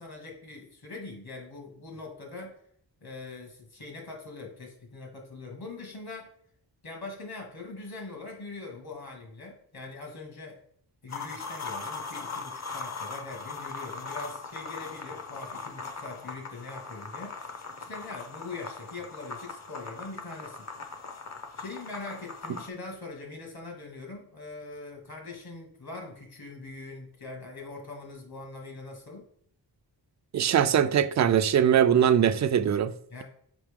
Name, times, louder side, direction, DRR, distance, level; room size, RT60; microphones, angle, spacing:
voice 1, 0.0-2.6 3.0-6.3 6.8-10.6 11.0-20.7 21.6-29.2 33.1-33.2, left 3 dB, 60° left, 1.9 m, -42 dB
sound 1, 11.1-22.7, left 4 dB, 40° left, 0.8 m, -40 dB
voice 2, 30.3-32.9, right 9 dB, 45° right, 0.4 m, -22 dB
6.1 x 5.0 x 3.6 m
wide cardioid pair, 110°, 43 cm